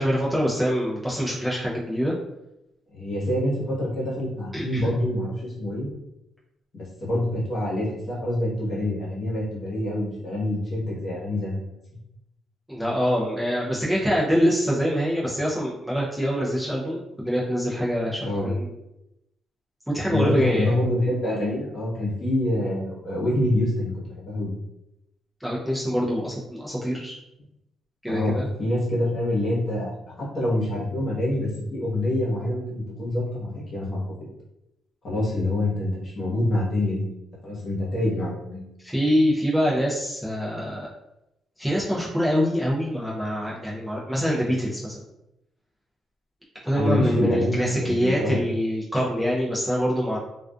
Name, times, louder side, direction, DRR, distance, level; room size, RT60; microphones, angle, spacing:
voice 1, 0.0-2.1 4.5-4.8 12.7-18.7 19.9-20.7 25.4-27.2 28.0-28.5 38.8-40.9 41.6-45.0 46.6-50.2, equal, 5° right, -6 dB, 0.5 m, -25 dB
voice 2, 2.9-5.9 6.7-11.8 18.2-18.5 20.1-23.9 24.2-24.5 28.1-29.9 30.2-34.3 35.0-37.0 37.4-38.7 46.7-48.4, left 1 dB, 40° left, -6 dB, 1.1 m, -26 dB
2.4 x 2.3 x 2.3 m, 0.87 s
cardioid pair, 120°, 0 cm